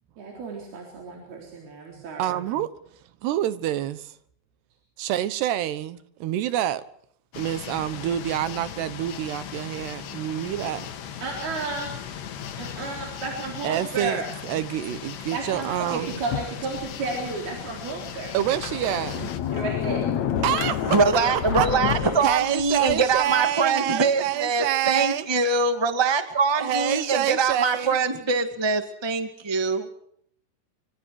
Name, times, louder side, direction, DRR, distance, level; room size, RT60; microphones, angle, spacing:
voice 1, 0.2-2.3 11.2-12.0 12.6-14.3 15.3-18.4 19.5-20.1, right 3 dB, 70° right, 5.8 m, -33 dB
voice 2, 1.9-2.7 3.2-4.1 5.0-6.8 7.4-10.9 13.6-16.2 18.3-19.3 20.4-21.0 21.6-21.7 22.2-25.2 26.6-28.0, right 11 dB, 85° right, 3.3 m, -27 dB
sound 1, 7.3-19.4, left 9 dB, 90° left, 4.1 m, -38 dB
Sliding door, 16.3-17.2 17.7-17.8 18.4-23.3, left 9 dB, 60° left, 2.1 m, -29 dB
voice 3, 20.9-29.9, right 4 dB, 30° right, 0.5 m, -23 dB
26.5 x 25.5 x 4.8 m
omnidirectional pair, 4.7 m